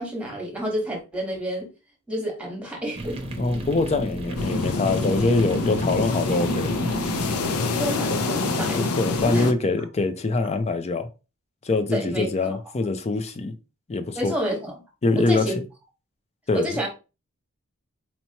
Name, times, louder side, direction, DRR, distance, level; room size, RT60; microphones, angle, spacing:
voice 1, 0.0-1.7 2.1-3.2 7.6-8.8 9.3-9.5 11.9-12.6 14.1-14.7 15.1-15.6 16.5-16.9, right 1 dB, 5° right, 1.4 m, -29 dB
sound 1, 2.9-8.0, right 1 dB, 25° right, 0.8 m, -33 dB
voice 2, 3.4-6.7 8.1-8.2 8.7-11.1 11.6-13.5 13.9-14.3 15.0-15.6 16.5-16.7, left 3 dB, 30° left, 0.5 m, -24 dB
sound 2, 4.4-9.5, left 3 dB, 85° left, 0.6 m, -26 dB
4.4 x 2.9 x 2.8 m
head